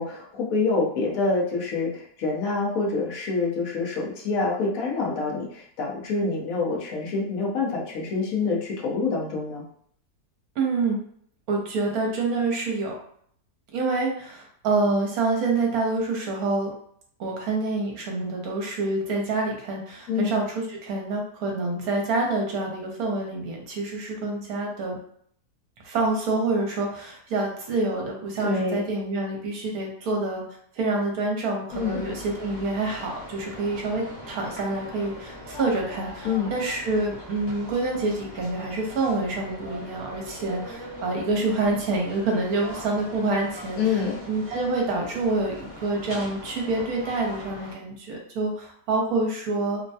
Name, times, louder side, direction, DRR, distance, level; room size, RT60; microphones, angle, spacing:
voice 1, 0.0-9.6 20.1-20.3 28.4-28.8 31.7-32.0 36.2-36.5 43.8-44.2, left 4 dB, 60° left, -2 dB, 1.1 m, -26 dB
voice 2, 10.6-11.0 11.5-12.9 13.7-16.7 17.2-25.0 25.8-30.4 30.7-44.0 44.3-49.8, right 3 dB, 65° right, 0 dB, 1.2 m, -27 dB
sound 1, 31.7-47.7, equal, 25° left, 0.5 m, -41 dB
3.3 x 2.1 x 2.7 m, 0.62 s
omnidirectional pair, 1.8 m